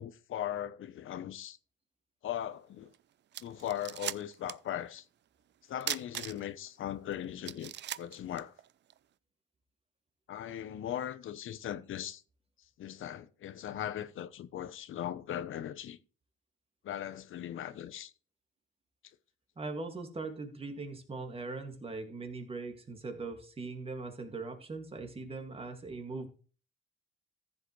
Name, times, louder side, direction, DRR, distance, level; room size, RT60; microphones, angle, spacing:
voice 1, 0.0-1.6 2.2-2.9 3.4-5.0 5.7-7.7 8.0-8.5 10.3-12.2 12.8-16.0 16.8-18.1, left 11 dB, 70° left, 0.8 m, -39 dB
sound 1, 2.9-3.0 3.3-4.7 5.0-5.1 5.8-6.7 7.1-7.2 7.4-9.0, right 12 dB, 55° right, 0.5 m, -38 dB
voice 2, 19.6-26.3, right 3 dB, 25° right, 2.1 m, -40 dB
14.5 x 7.6 x 3.1 m
cardioid pair, 125°, 21 cm